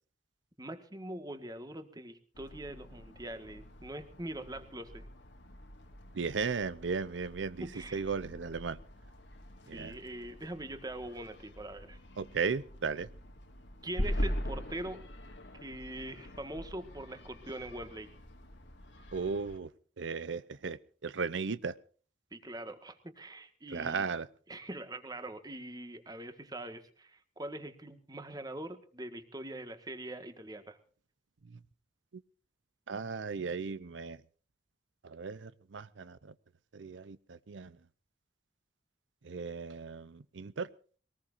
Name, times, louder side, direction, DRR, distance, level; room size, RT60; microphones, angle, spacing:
voice 1, 0.6-5.1 7.6-8.0 9.7-12.0 13.8-15.0 15.6-18.1 22.3-24.0 24.5-30.8, right 1 dB, 20° right, 8 dB, 1.7 m, -43 dB
sound 1, 2.3-19.6, equal, 75° left, 2.0 m, -43 dB
voice 2, 6.1-8.8 9.7-10.0 12.2-13.1 19.1-19.7 20.0-21.8 23.7-24.3 31.5-31.6 32.9-34.2 35.0-36.3 36.7-37.7 39.2-40.7, right 5 dB, 90° right, 15 dB, 0.7 m, -36 dB
22.0 x 19.0 x 2.6 m, 0.41 s
head